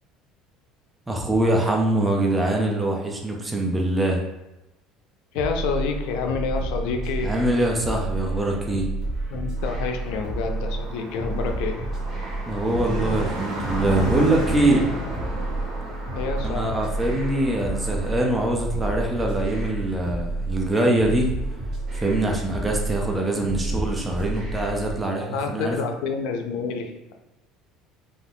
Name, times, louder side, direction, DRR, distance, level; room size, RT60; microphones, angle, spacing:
voice 1, 1.1-4.2 7.2-8.9 12.5-14.9 16.4-21.4 21.9-25.8, right 1 dB, 10° right, 0 dB, 0.4 m, -23 dB
voice 2, 5.3-7.3 9.3-11.9 16.1-16.7 25.3-27.1, left 5 dB, 75° left, 4 dB, 0.4 m, -28 dB
sound 1, 5.3-24.9, right 2 dB, 35° right, 1.1 m, -30 dB
Car passing by, 9.6-18.1, right 1 dB, 65° right, 0.9 m, -33 dB
2.4 x 2.3 x 3.4 m, 0.98 s
cardioid pair, 155°, 0 cm